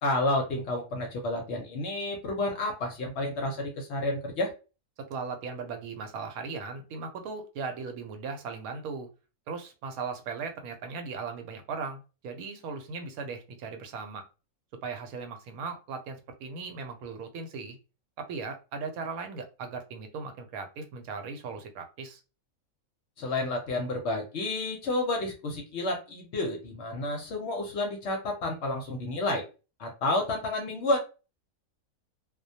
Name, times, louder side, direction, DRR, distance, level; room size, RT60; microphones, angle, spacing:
voice 1, 0.0-4.5 23.2-29.4 29.8-31.0, left 2 dB, 65° left, 3 dB, 0.8 m, -30 dB
voice 2, 5.1-9.1 9.5-14.2 14.8-17.8 18.2-22.2, right 5 dB, 85° right, 6 dB, 1.0 m, -38 dB
2.3 x 2.1 x 2.6 m, 0.32 s
omnidirectional pair, 1.5 m